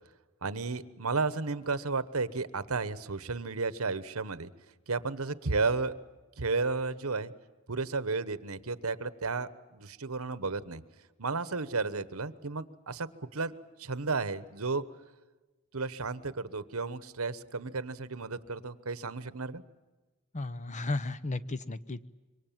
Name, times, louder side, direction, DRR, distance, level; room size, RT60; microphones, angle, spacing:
voice 1, 0.4-4.5 4.9-5.9 6.4-7.3 7.7-10.8 11.2-13.5 13.8-14.8 15.7-19.6, right 4 dB, 85° right, 14 dB, 1.2 m, -33 dB
voice 2, 20.3-22.0, left 2 dB, 35° left, 14 dB, 0.9 m, -34 dB
26.5 x 24.0 x 7.5 m, 1.2 s
head